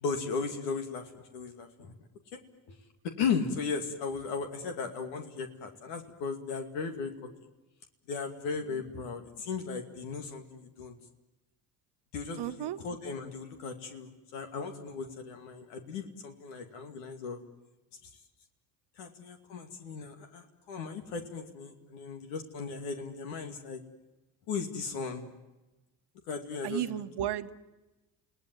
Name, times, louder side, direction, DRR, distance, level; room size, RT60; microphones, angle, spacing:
voice 1, 0.0-1.9 2.3-2.4 3.2-7.1 8.1-10.9 12.1-17.4 18.0-18.1 19.0-23.8 24.5-25.3 26.3-26.8, left 5 dB, 80° left, 5 dB, 2.5 m, -36 dB
voice 2, 12.4-12.8 26.6-27.5, right 12 dB, 60° right, 11 dB, 1.3 m, -33 dB
29.0 x 18.0 x 9.4 m, 1.1 s
hypercardioid pair, 65°, 46 cm